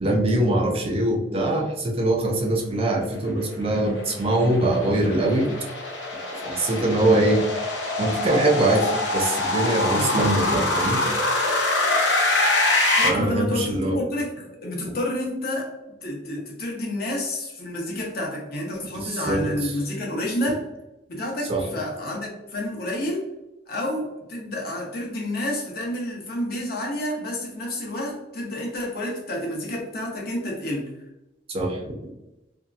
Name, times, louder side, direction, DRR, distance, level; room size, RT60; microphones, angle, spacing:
voice 1, 0.0-5.5 6.4-7.4 8.0-11.0 13.0-14.0 19.0-19.7 21.5-21.6 31.5-31.9, right 1 dB, 35° right, 1 dB, 0.5 m, -23 dB
sound 1, 3.5-13.1, left 2 dB, 90° left, 0.6 m, -24 dB
voice 2, 12.9-15.7 16.0-20.7 21.1-23.3 23.7-30.9, left 1 dB, 60° left, -1 dB, 0.8 m, -29 dB
2.8 x 2.3 x 2.3 m, 0.97 s
head